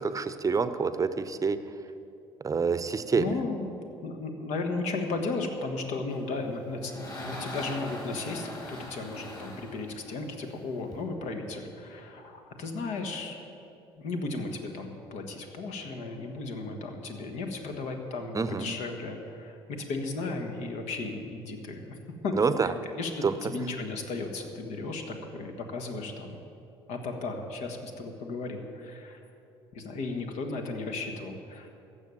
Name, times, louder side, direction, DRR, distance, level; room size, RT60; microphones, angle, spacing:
voice 1, 0.0-1.6 2.4-3.3 18.3-18.7 22.3-22.7 23.2-23.4, right 5 dB, 25° right, 12 dB, 0.8 m, -27 dB
voice 2, 3.1-3.8 4.0-13.4 14.0-22.0 22.2-22.4 22.6-26.4 26.9-29.2 29.7-31.7, left 3 dB, 60° left, 4 dB, 1.6 m, -35 dB
sound 1, 6.3-11.0, left 1 dB, 30° left, 4.1 m, -41 dB
14.5 x 6.9 x 9.1 m, 2.7 s
figure-of-eight pair, 55°, 13 cm